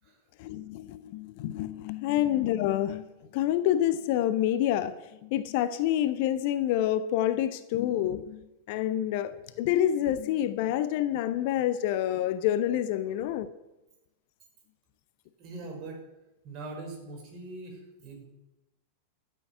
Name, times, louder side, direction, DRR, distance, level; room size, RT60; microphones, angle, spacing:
voice 1, 0.4-5.0 5.2-8.4 8.7-13.5, left 12 dB, 50° left, 13 dB, 0.8 m, -27 dB
voice 2, 15.4-16.0 16.4-18.2, right 3 dB, 40° right, 2 dB, 5.7 m, -42 dB
13.5 x 8.3 x 9.3 m, 0.97 s
figure-of-eight pair, 90°, 0 cm